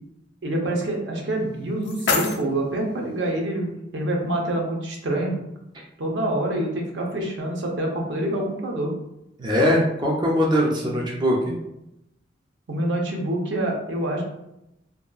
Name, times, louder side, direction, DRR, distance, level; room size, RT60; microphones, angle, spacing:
voice 1, 0.4-5.4 6.0-8.9 10.8-11.1 12.7-14.2, right 1 dB, 75° right, 0 dB, 0.6 m, -26 dB
sound 1, 1.3-3.3, left 4 dB, 75° left, 0.4 m, -29 dB
voice 2, 9.4-11.5, equal, 25° right, -2 dB, 0.4 m, -21 dB
2.8 x 2.2 x 2.2 m, 0.85 s
head